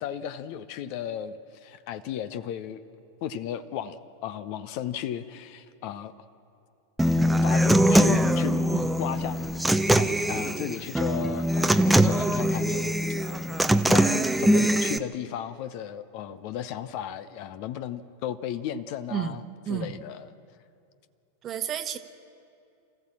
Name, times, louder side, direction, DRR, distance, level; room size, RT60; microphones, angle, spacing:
voice 1, 0.0-2.8 3.2-6.1 7.4-8.6 9.0-9.5 9.9-13.0 13.9-19.4 19.7-20.3, left 10 dB, 45° left, 13 dB, 0.8 m, -35 dB
Human voice / Acoustic guitar, 7.0-15.0, right 1 dB, 5° right, 0.8 m, -22 dB
voice 2, 19.1-19.9 21.4-22.0, right 8 dB, 30° right, 9 dB, 1.2 m, -31 dB
28.5 x 15.0 x 7.5 m, 2.6 s
figure-of-eight pair, 90°, 0 cm